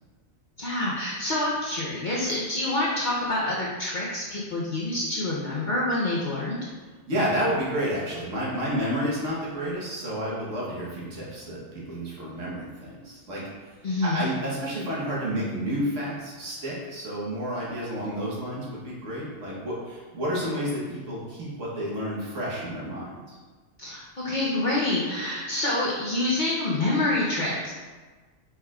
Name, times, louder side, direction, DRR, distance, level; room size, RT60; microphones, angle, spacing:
voice 1, 0.6-6.6 13.8-14.2 23.8-27.7, left 2 dB, 45° left, -6 dB, 0.7 m, -27 dB
voice 2, 7.1-13.4 14.0-23.3, equal, 65° right, -6 dB, 1.5 m, -30 dB
4.9 x 4.3 x 2.4 m, 1.4 s
omnidirectional pair, 1.4 m